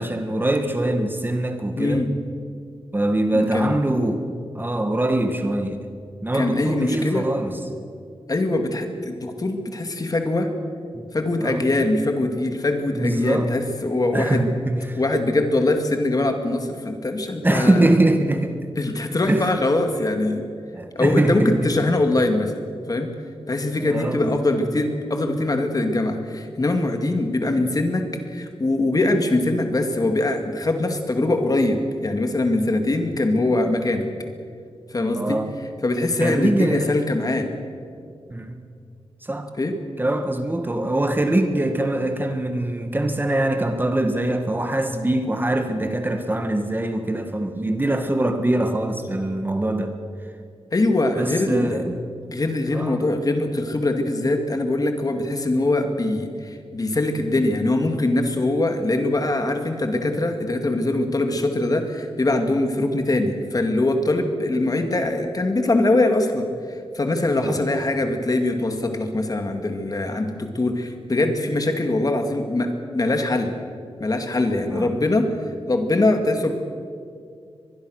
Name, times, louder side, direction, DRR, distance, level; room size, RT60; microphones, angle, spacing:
voice 1, 0.0-2.1 2.9-4.2 4.5-5.8 6.2-7.5 10.9-11.1 11.4-11.6 12.9-13.5 14.1-15.0 15.6-15.7 17.4-18.6 19.3-19.6 20.7-21.9 23.8-24.5 35.1-35.5 36.2-37.0 38.3-38.6 39.2-39.5 40.0-49.9 51.2-52.0 52.7-53.0 67.4-67.6 74.7-74.9, right 1 dB, 20° right, 6 dB, 1.6 m, -23 dB
voice 2, 1.8-2.1 3.3-3.8 6.3-7.3 8.3-10.5 11.1-14.5 15.0-17.9 18.8-20.4 21.0-22.5 22.9-23.1 23.5-34.1 34.9-35.4 35.8-37.5 39.6-39.7 50.7-51.8 52.3-73.5 74.0-75.3 75.7-76.5, left 2 dB, 40° left, 5 dB, 2.3 m, -22 dB
24.0 x 21.0 x 6.5 m, 2.3 s
wide cardioid pair, 110°, 10 cm